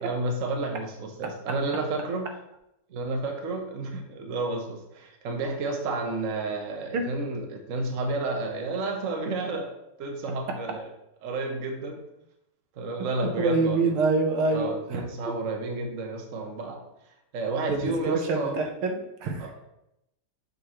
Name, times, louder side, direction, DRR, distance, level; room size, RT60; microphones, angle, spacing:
voice 1, 0.0-2.3 2.9-9.7 10.0-10.9 11.2-12.1 12.8-13.9 14.5-16.8 17.3-18.5 19.4-19.6, right 2 dB, 50° right, 2 dB, 1.1 m, -31 dB
voice 2, 13.4-15.0 17.7-19.5, right 3 dB, 80° right, 4 dB, 1.7 m, -26 dB
6.7 x 5.4 x 3.0 m, 0.83 s
omnidirectional pair, 2.3 m